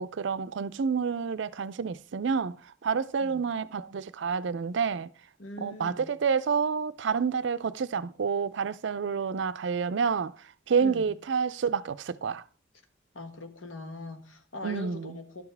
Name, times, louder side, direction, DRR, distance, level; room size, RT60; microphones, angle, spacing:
voice 1, 0.0-2.6 2.8-5.1 5.6-10.3 10.7-12.4 14.6-15.2, right 6 dB, 65° right, 0.4 m, -29 dB
voice 2, 5.4-6.1 10.8-11.2 13.1-15.4, left 2 dB, 85° left, 1.5 m, -41 dB
11.5 x 7.1 x 3.4 m
head